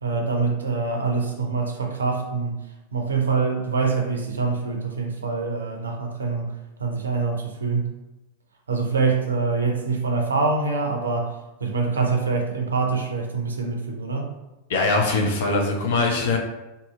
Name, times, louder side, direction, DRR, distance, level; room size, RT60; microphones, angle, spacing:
voice 1, 0.0-2.6 2.9-6.5 6.8-7.9 8.7-14.3, right 4 dB, 70° right, 2 dB, 0.5 m, -25 dB
voice 2, 14.7-16.4, left 3 dB, 55° left, 0 dB, 0.5 m, -22 dB
2.7 x 2.6 x 2.3 m, 0.99 s
figure-of-eight pair, 90°, 0 cm